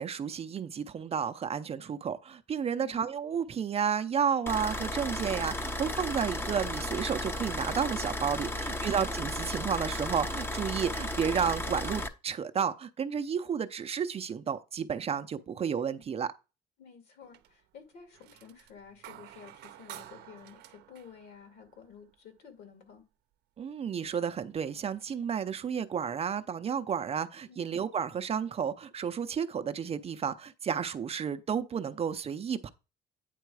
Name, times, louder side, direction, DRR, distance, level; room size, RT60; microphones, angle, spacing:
voice 1, 0.0-16.3 23.6-32.7, right 7 dB, 35° right, 0.6 m, -32 dB
sound 1, 4.5-12.1, left 1 dB, 15° left, 0.7 m, -34 dB
voice 2, 8.5-8.8 16.8-23.1 27.5-27.7, left 6 dB, 70° left, 2.3 m, -52 dB
sound 2, 17.2-17.7 18.0-22.2 23.7-23.8 24.3-25.0, right 12 dB, 75° right, 0.7 m, -51 dB
9.3 x 3.7 x 4.8 m
cardioid pair, 110°, 17 cm